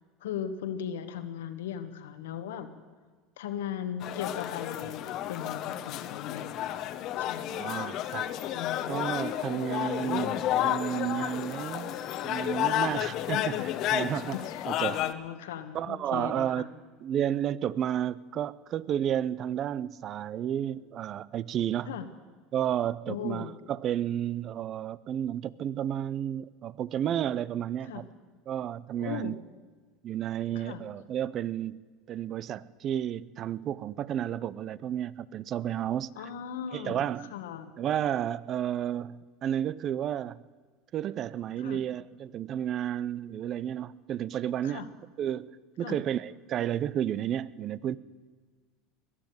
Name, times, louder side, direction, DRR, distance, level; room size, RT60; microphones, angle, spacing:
voice 1, 0.2-2.7 3.4-6.8 7.2-7.7 8.5-9.0 13.3-13.7 14.4-16.7 21.9-22.1 23.1-23.5 27.8-28.0 29.0-29.4 30.5-30.8 36.1-37.7 41.6-41.8 44.6-44.9 45.8-46.0, left 8 dB, 90° left, 1.3 m, -38 dB
sound 1, 4.0-15.1, left 12 dB, 55° left, 0.9 m, -31 dB
voice 2, 7.5-8.3 8.9-12.0 12.2-14.4 14.7-15.0 15.7-16.6 17.0-22.0 22.5-28.0 28.5-29.4 30.0-31.8 32.1-36.2 36.7-37.3 37.8-40.4 40.9-44.8 45.2-45.5 45.8-48.0, right 10 dB, 45° right, 0.5 m, -32 dB
sound 2, 8.2-13.3, right 4 dB, 65° right, 4.0 m, -49 dB
21.5 x 7.3 x 9.2 m
supercardioid pair, 105°, 0 cm